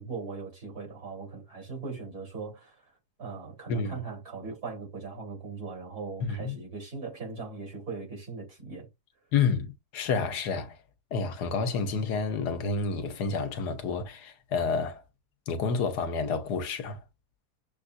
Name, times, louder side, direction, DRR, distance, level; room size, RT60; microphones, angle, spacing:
voice 1, 0.0-2.8 3.2-8.9, right 4 dB, 65° right, 4.0 m, -39 dB
voice 2, 3.7-4.0 6.2-6.6 9.3-10.7 11.1-15.0 15.5-17.0, left 5 dB, 80° left, 1.5 m, -29 dB
7.1 x 2.5 x 2.5 m
omnidirectional pair, 1.7 m